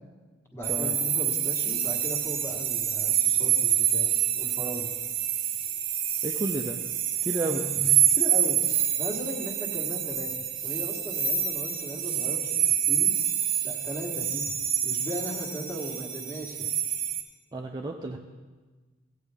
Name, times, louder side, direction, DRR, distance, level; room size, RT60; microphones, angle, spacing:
voice 1, 0.5-4.9 7.4-8.6 9.0-13.1 13.6-14.5 14.8-16.7, right 1 dB, 15° left, -1 dB, 1.5 m, -37 dB
sound 1, 0.6-17.2, right 10 dB, 50° right, 0.8 m, -27 dB
voice 2, 6.2-6.8 7.2-7.6 17.5-18.2, right 2 dB, 20° right, 1 dB, 0.5 m, -31 dB
15.5 x 8.3 x 3.5 m, 1.3 s
head